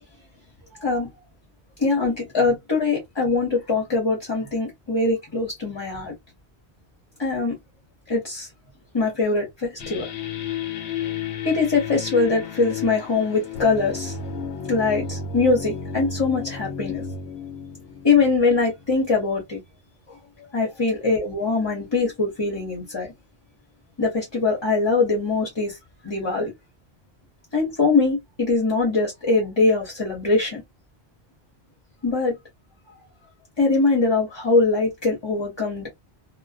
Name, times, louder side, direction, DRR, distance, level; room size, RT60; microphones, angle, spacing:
voice 1, 0.8-1.1 1.8-6.1 7.2-7.6 8.1-8.5 8.9-10.1 11.4-14.2 14.7-17.0 18.0-19.6 20.5-23.1 24.0-25.7 26.0-26.5 27.5-30.6 32.0-32.4 33.6-35.9, left 3 dB, 30° left, 0.7 m, -22 dB
sound 1, 9.8-19.1, left 6 dB, 85° left, 0.9 m, -32 dB
2.4 x 2.2 x 2.4 m
omnidirectional pair, 1.1 m